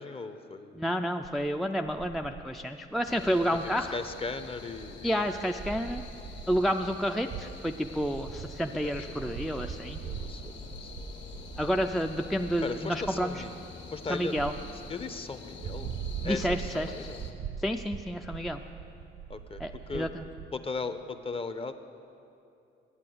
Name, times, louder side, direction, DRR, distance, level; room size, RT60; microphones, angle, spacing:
voice 1, 0.0-0.8 3.6-5.3 8.8-10.9 12.6-13.5 13.9-14.3 14.9-15.9 16.2-17.2 19.3-20.1 20.5-21.7, left 4 dB, 30° left, 10 dB, 0.6 m, -38 dB
voice 2, 0.8-4.0 5.0-6.0 6.5-10.0 11.6-13.3 14.1-14.5 16.2-16.9 17.6-18.6 19.6-20.2, equal, ahead, 5 dB, 0.3 m, -30 dB
sound 1, 1.2-1.5 1.8-4.0 4.2-4.3 4.9-6.7 7.2-12.8 13.0-13.4 14.3-15.2 15.6-20.5, right 7 dB, 65° right, 0.5 m, -42 dB
sound 2, 3.0-17.3, left 4 dB, 65° left, 1.5 m, -46 dB
9.7 x 9.0 x 7.7 m, 2.6 s
cardioid pair, 90°, 20 cm